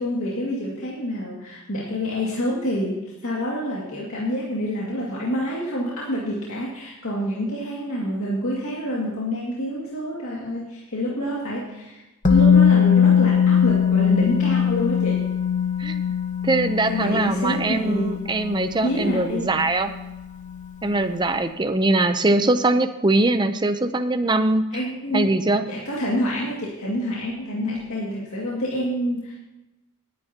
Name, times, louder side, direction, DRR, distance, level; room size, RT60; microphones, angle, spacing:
voice 1, 0.0-12.0 12.3-15.3 16.9-18.2 18.8-19.5 24.7-29.4, equal, 70° left, -5 dB, 2.2 m, -27 dB
Musical instrument, 12.2-20.1 20.4-20.6, left 7 dB, 35° left, 1.0 m, -21 dB
voice 2, 16.4-19.9 20.8-24.6 25.1-25.6, right 2 dB, 20° right, 9 dB, 0.6 m, -22 dB
19.0 x 10.0 x 2.9 m, 1.0 s
head